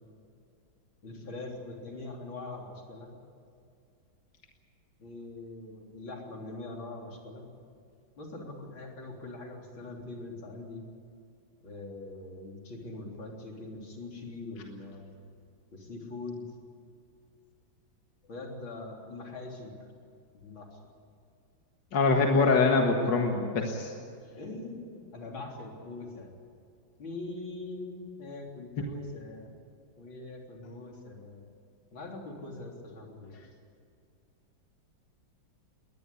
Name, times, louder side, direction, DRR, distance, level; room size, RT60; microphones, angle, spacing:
voice 1, 1.0-3.1 5.0-7.5 8.2-10.8 11.6-15.1 15.7-16.4 18.3-19.7 20.3-20.8 24.4-26.3 27.0-29.5 30.0-31.4 31.9-33.4, left 2 dB, 85° left, 0 dB, 4.4 m, -42 dB
voice 2, 21.9-23.9, left 3 dB, 65° left, 2 dB, 2.4 m, -24 dB
21.5 x 19.5 x 8.6 m, 2.4 s
omnidirectional pair, 2.1 m